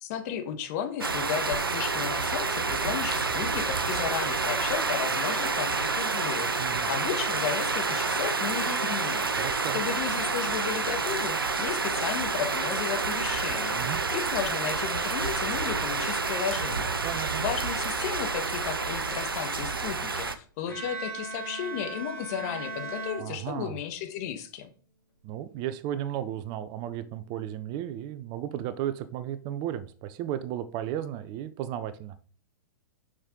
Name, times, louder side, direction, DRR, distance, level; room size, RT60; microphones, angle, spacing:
voice 1, 0.0-6.5 6.9-24.7, left 9 dB, 45° left, 8 dB, 1.4 m, -34 dB
sound 1, 1.0-20.3, right 4 dB, 90° right, 0.7 m, -29 dB
voice 2, 6.6-6.9 9.4-9.8 13.7-14.0 17.0-17.4 23.2-23.8 25.2-32.2, right 11 dB, 35° right, 13 dB, 0.7 m, -34 dB
Bowed string instrument, 20.7-24.0, right 3 dB, 85° left, 3.5 m, -38 dB
6.4 x 6.1 x 3.8 m, 0.42 s
figure-of-eight pair, 110°, 12 cm